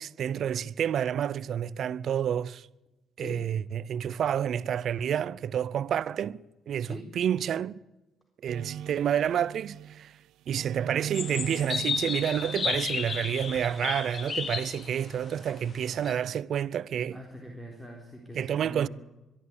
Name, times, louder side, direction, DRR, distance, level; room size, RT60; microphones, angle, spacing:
voice 1, 0.0-2.7 3.2-7.8 8.4-10.1 10.5-17.2 18.3-18.9, right 9 dB, 65° right, 0.6 m, -29 dB
sound 1, 8.5-10.1 10.4-13.9, right 11 dB, 85° right, 1.0 m, -40 dB
sound 2, 11.1-16.1, left 5 dB, 45° left, 1.9 m, -33 dB
voice 2, 17.1-18.9, equal, 5° left, 3.9 m, -43 dB
22.5 x 13.5 x 8.7 m
cardioid pair, 90°, 0 cm